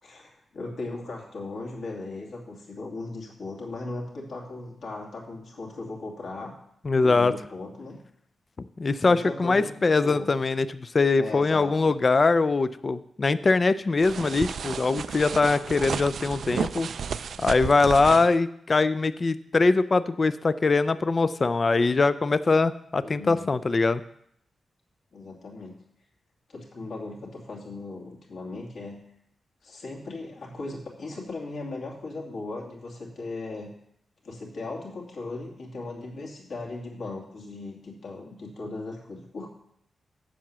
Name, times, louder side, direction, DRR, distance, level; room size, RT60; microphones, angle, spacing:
voice 1, 0.0-6.6 6.9-8.0 9.0-10.3 11.2-11.9 23.0-23.6 25.1-25.7 26.5-29.0 29.6-33.7 34.2-39.5, left 2 dB, 60° left, -2 dB, 2.4 m, -38 dB
voice 2, 6.8-7.3 8.8-16.9 17.4-24.0, left 3 dB, 30° left, 14 dB, 0.3 m, -22 dB
sound 1, 14.0-18.4, right 6 dB, 60° right, 0.3 m, -33 dB
7.5 x 6.7 x 7.3 m, 0.71 s
wide cardioid pair, 165°, 0 cm